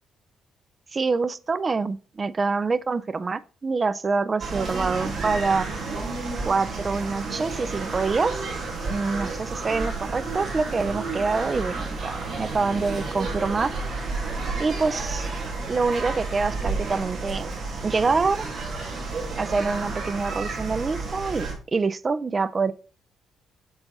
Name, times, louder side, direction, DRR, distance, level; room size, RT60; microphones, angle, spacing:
voice 1, 0.9-5.7 6.5-8.3 8.9-9.3 9.6-13.7 14.6-15.3 15.7-17.5 17.8-18.4 19.4-22.7, right 4 dB, 30° right, 0.4 m, -25 dB
sound 1, 4.4-21.5, right 3 dB, 55° right, 2.2 m, -31 dB
7.1 x 4.0 x 3.9 m
cardioid pair, 90°, 0 cm